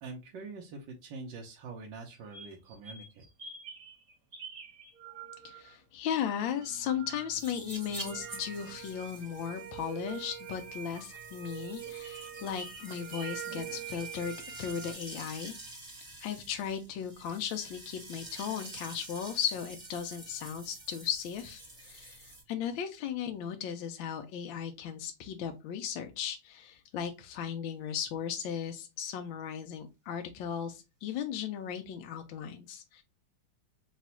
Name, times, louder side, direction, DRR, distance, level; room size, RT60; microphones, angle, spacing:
voice 1, 0.0-3.2, right 4 dB, 65° right, 0 dB, 1.3 m, -44 dB
sound 1, 2.1-5.7 6.1-14.9, right 8 dB, 45° right, 1.2 m, -45 dB
voice 2, 5.4-15.5 16.2-33.0, left 8 dB, 75° left, 5 dB, 1.3 m, -36 dB
sound 2, 7.3-22.4, right 1 dB, 25° right, 1.0 m, -48 dB
4.0 x 2.3 x 4.2 m, 0.25 s
omnidirectional pair, 2.4 m